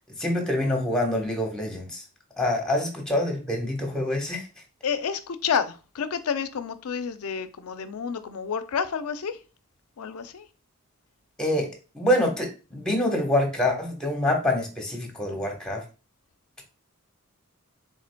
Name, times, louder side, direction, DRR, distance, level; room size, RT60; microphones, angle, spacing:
voice 1, 0.2-2.0 2.4-4.4 11.4-11.7 11.9-15.8, left 1 dB, 5° left, 1.1 m, -26 dB
voice 2, 4.8-9.4 10.0-10.5, left 6 dB, 90° left, 0.5 m, -29 dB
5.0 x 3.9 x 2.2 m
head